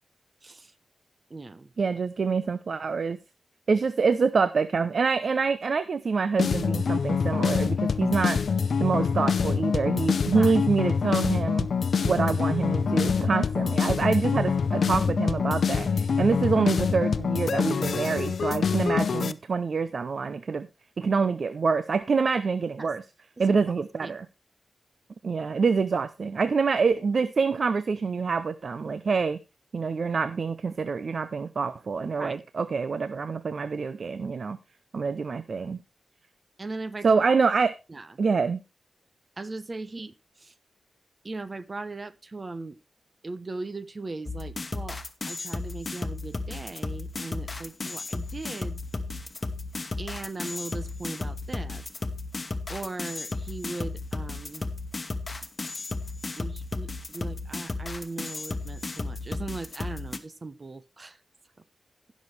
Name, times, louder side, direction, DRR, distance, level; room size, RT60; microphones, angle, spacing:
voice 1, 0.4-0.7 1.3-1.7 10.3-10.5 22.8-22.9 24.0-24.1 32.2-32.4 36.6-37.2 37.9-38.2 39.4-40.5 41.2-42.8 43.2-48.8 50.0-51.9 52.7-54.6 56.4-61.2, right 3 dB, 35° right, 14 dB, 0.8 m, -38 dB
voice 2, 1.8-3.2 3.7-8.4 8.8-11.7 12.0-20.7 21.0-23.0 23.4-24.3 25.2-29.4 29.7-34.6 34.9-35.8 37.0-37.8 38.2-38.6, right 5 dB, 60° right, 13 dB, 0.6 m, -26 dB
sound 1, 6.4-19.3, left 6 dB, 70° left, 0.5 m, -25 dB
sound 2, 44.3-60.2, left 3 dB, 35° left, 1.2 m, -34 dB
16.0 x 6.3 x 3.2 m, 0.27 s
wide cardioid pair, 85°, 0 cm